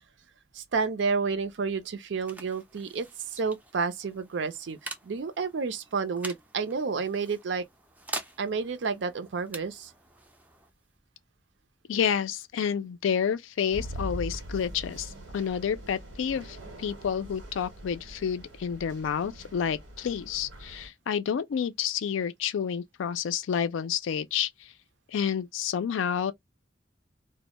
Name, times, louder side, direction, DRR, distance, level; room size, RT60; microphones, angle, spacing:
voice 1, 0.5-7.6 8.4-9.9, right 5 dB, 70° right, 0.4 m, -30 dB
sound 1, 1.5-12.8, right 2 dB, 10° right, 0.3 m, -45 dB
voice 2, 11.9-24.7 25.1-26.3, left 7 dB, 90° left, 0.4 m, -29 dB
sound 2, 13.7-20.9, equal, 90° right, 0.9 m, -42 dB
2.1 x 2.0 x 2.9 m
head